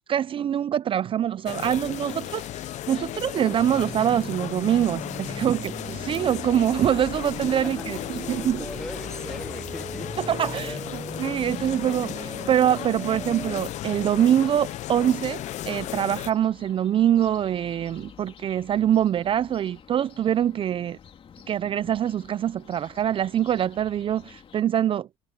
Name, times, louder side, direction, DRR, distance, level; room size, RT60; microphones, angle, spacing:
voice 1, 0.0-8.6 10.2-10.8 11.2-21.0 21.5-25.1, right 10 dB, 40° right, 0.4 m, -24 dB
sound 1, 1.5-16.3, left 13 dB, 60° left, 0.7 m, -35 dB
sound 2, 3.6-13.6, right 3 dB, 15° right, 0.9 m, -39 dB
sound 3, 5.7-24.6, left 7 dB, 40° left, 3.5 m, -47 dB
voice 2, 8.2-10.1 10.4-10.8, left 1 dB, 5° left, 1.3 m, -39 dB
supercardioid pair, 95°, 14 cm